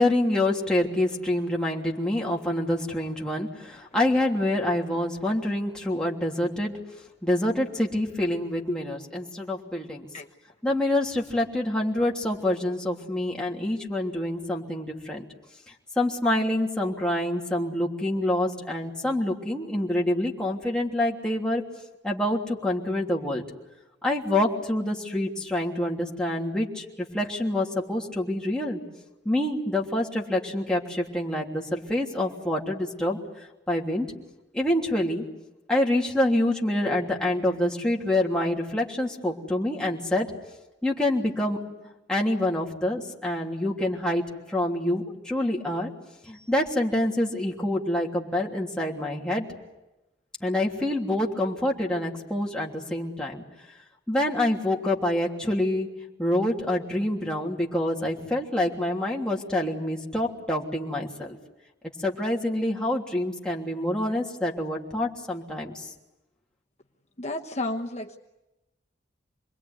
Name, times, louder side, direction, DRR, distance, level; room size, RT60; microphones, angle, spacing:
voice 1, 0.0-6.7 7.2-10.1 10.6-15.2 15.9-21.6 22.0-23.4 24.0-28.8 29.2-33.2 33.7-34.1 34.5-35.2 35.7-40.3 40.8-41.6 42.1-45.9 46.2-49.4 50.4-53.4 54.1-55.9 56.2-61.4 62.0-65.9, left 1 dB, 5° left, -3 dB, 3.1 m, -26 dB
voice 2, 67.2-68.2, left 2 dB, 35° left, 2 dB, 1.2 m, -31 dB
28.0 x 21.5 x 9.7 m, 0.98 s
head